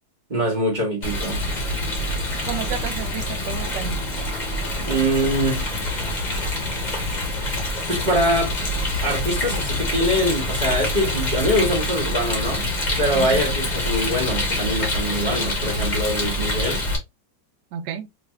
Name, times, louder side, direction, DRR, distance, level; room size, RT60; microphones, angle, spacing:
voice 1, 0.3-1.4 4.8-5.7 7.9-8.5 9.0-12.7 13.0-16.8, equal, 25° right, 1.9 m, -23 dB
Rain, 1.0-17.0, left 1 dB, 30° left, 1.1 m, -26 dB
voice 2, 2.5-4.0 13.1-13.4 17.7-18.1, right 7 dB, 80° right, 1.3 m, -31 dB
3.3 x 3.2 x 3.1 m
omnidirectional pair, 1.9 m